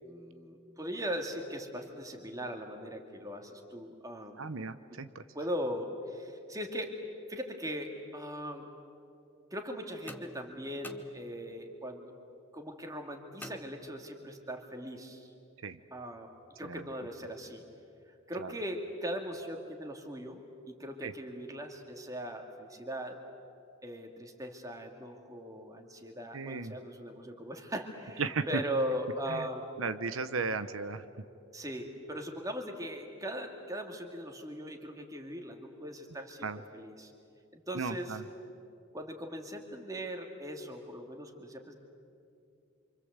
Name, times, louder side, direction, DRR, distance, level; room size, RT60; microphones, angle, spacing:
voice 1, 0.0-4.4 4.9-5.0 5.3-7.0 7.3-8.7 9.5-12.1 12.5-15.3 15.9-16.3 16.6-17.6 18.3-23.2 23.8-29.7 31.5-37.1 37.5-38.2 38.9-41.7, equal, 15° right, 4 dB, 2.3 m, -39 dB
voice 2, 4.4-5.2 15.6-15.8 16.6-16.8 18.4-18.5 21.0-21.1 26.3-26.7 28.2-28.6 29.3-29.4 29.8-31.0 36.4-36.6 37.7-38.2, right 4 dB, 85° right, 11 dB, 0.9 m, -35 dB
sound 1, 10.1-11.7 13.4-14.4, left 1 dB, 10° left, 1.1 m, -49 dB
27.5 x 25.5 x 8.2 m, 2.6 s
head